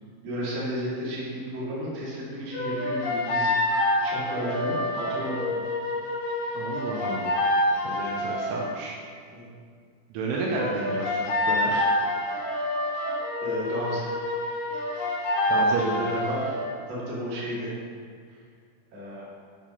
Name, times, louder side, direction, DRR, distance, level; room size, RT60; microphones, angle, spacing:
voice 1, 0.2-5.7 9.3-9.5 13.4-14.1 15.6-16.6 16.9-17.7 18.3-18.4 18.9-19.3, equal, 45° right, -8 dB, 2.5 m, -33 dB
sound 1, 2.5-8.7 10.5-16.7, left 1 dB, 55° left, 2.7 m, -27 dB
voice 2, 6.5-7.4 7.8-9.0 10.1-11.9 15.5-16.1, right 3 dB, 80° right, -2 dB, 3.2 m, -31 dB
9.0 x 5.0 x 5.3 m, 2.1 s
omnidirectional pair, 6.0 m